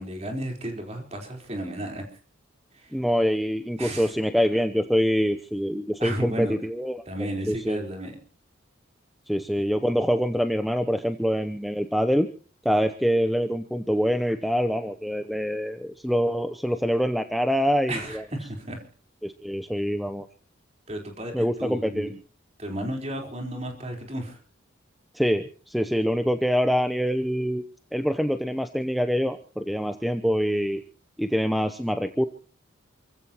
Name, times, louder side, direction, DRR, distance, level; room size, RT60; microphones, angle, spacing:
voice 1, 0.0-2.1 2.7-3.0 3.8-4.1 6.0-6.5 7.1-8.2 17.9-18.8 20.9-22.1 22.6-24.4, right 1 dB, 30° right, 3 dB, 4.2 m, -33 dB
voice 2, 2.9-7.0 7.5-7.8 9.3-12.3 12.6-18.2 19.2-20.3 21.3-22.1 25.1-27.6 27.9-30.8 31.2-32.3, equal, ahead, 8 dB, 0.7 m, -25 dB
28.5 x 16.0 x 3.0 m, 0.38 s
head